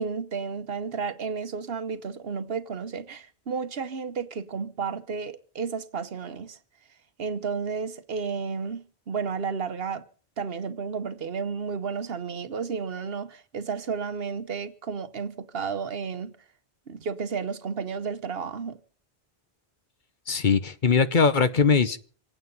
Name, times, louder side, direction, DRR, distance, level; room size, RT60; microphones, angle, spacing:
voice 1, 0.0-6.6 7.2-10.0 10.4-16.3 16.9-18.8, right 5 dB, 70° right, 1.2 m, -32 dB
voice 2, 20.3-22.0, left 5 dB, 50° left, 1.1 m, -21 dB
27.0 x 9.1 x 5.5 m
omnidirectional pair, 1.0 m